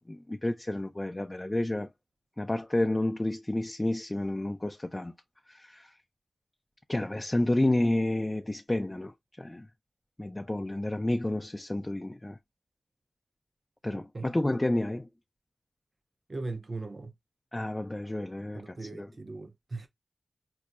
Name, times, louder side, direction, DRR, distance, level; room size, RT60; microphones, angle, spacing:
voice 1, 0.0-1.9 2.4-5.1 5.5-5.9 6.9-9.7 10.2-12.4 13.8-15.1 17.5-19.1, left 1 dB, 20° left, 0.3 m, -30 dB
voice 2, 13.9-14.3 16.3-17.1 18.5-19.9, right 3 dB, 45° right, 0.5 m, -39 dB
5.3 x 2.0 x 2.3 m
wide cardioid pair, 75°, 0 cm